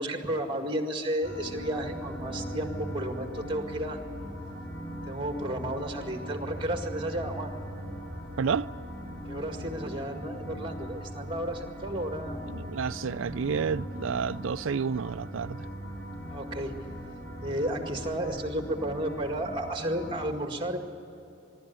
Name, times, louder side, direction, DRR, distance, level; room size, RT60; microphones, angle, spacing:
voice 1, 0.0-4.0 5.1-7.6 9.3-12.4 16.3-16.7 17.4-20.8, right 1 dB, 25° right, 2.0 m, -32 dB
sound 1, 1.2-20.3, equal, 10° left, 5.9 m, -39 dB
voice 2, 8.4-8.7 12.5-15.7, right 6 dB, 75° right, 0.4 m, -30 dB
23.5 x 12.5 x 9.6 m
head